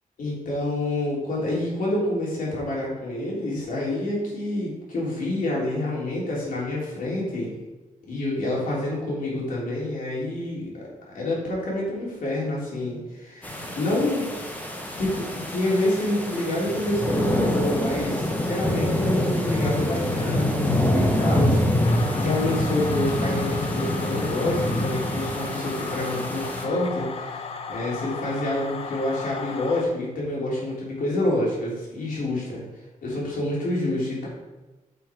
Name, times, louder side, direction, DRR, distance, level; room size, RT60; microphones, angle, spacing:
voice 1, 0.2-7.5 8.1-10.8 11.1-14.3 15.0-32.6 33.0-34.3, left 1 dB, 70° left, -5 dB, 3.3 m, -28 dB
sound 1, 13.4-26.6, left 1 dB, 10° left, 1.1 m, -26 dB
sound 2, 21.8-29.8, left 5 dB, 40° left, 0.7 m, -36 dB
9.7 x 5.6 x 4.6 m, 1.1 s
wide cardioid pair, 165°, 14 cm